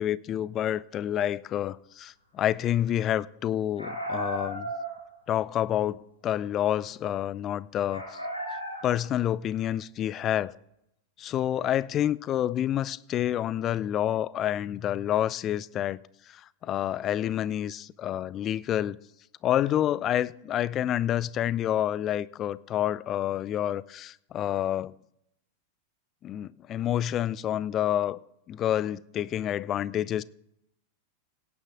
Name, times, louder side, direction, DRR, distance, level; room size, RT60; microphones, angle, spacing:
voice 1, 0.0-4.7 5.3-8.2 8.8-10.5 11.2-16.0 16.3-19.0 19.4-24.9 26.2-28.2 28.5-30.2, left 11 dB, 30° left, 0.4 m, -28 dB
sound 1, 3.8-5.1 7.9-9.1, right 1 dB, 85° left, 2.7 m, -35 dB
17.5 x 9.6 x 3.7 m
figure-of-eight pair, 90°, 0 cm